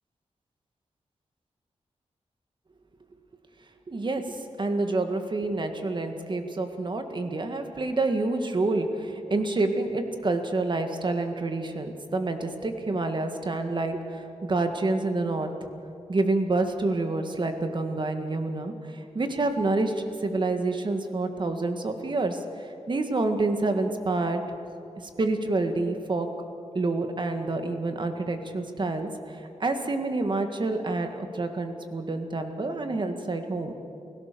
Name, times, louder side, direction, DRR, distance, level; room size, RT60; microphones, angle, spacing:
voice 1, 3.9-15.5 16.1-24.4 25.2-26.3 26.7-33.7, right 2 dB, 40° right, 6 dB, 1.9 m, -28 dB
29.5 x 17.0 x 6.9 m, 2.7 s
wide cardioid pair, 140°, 12 cm